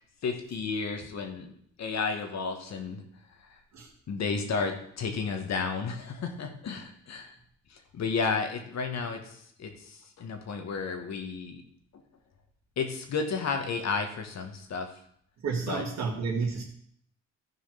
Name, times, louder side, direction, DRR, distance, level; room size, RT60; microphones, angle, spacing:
voice 1, 0.2-1.5 1.8-3.0 4.1-7.4 7.7-11.6 11.9-12.0 12.8-14.9 15.7-15.8, left 5 dB, 60° left, 5 dB, 1.8 m, -32 dB
voice 2, 15.4-16.6, right 4 dB, 60° right, -2 dB, 1.9 m, -31 dB
13.5 x 4.8 x 5.9 m, 0.67 s
cardioid pair, 90°, 30 cm